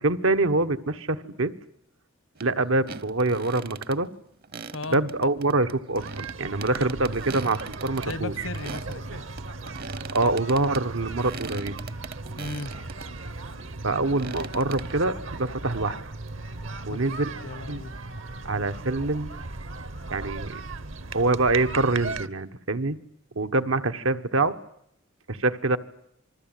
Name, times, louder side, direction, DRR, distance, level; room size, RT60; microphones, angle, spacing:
voice 1, 0.0-1.5 2.4-4.1 4.9-8.5 10.1-11.7 13.8-16.0 16.9-17.3 17.7-17.8 18.4-19.3 20.1-20.6 21.1-23.0 23.3-24.6 25.3-25.8, right 2 dB, 85° right, 1.4 m, -25 dB
sound 1, 2.4-2.5 2.8-4.0 4.4-9.0 9.4-13.1 13.6-14.9, right 4 dB, 50° right, 1.0 m, -40 dB
sound 2, 6.0-22.3, right 3 dB, 70° right, 1.3 m, -37 dB
voice 2, 8.0-9.2 12.4-12.7 16.9-17.0 17.4-17.9, left 2 dB, 80° left, 1.2 m, -36 dB
27.5 x 21.0 x 9.2 m
head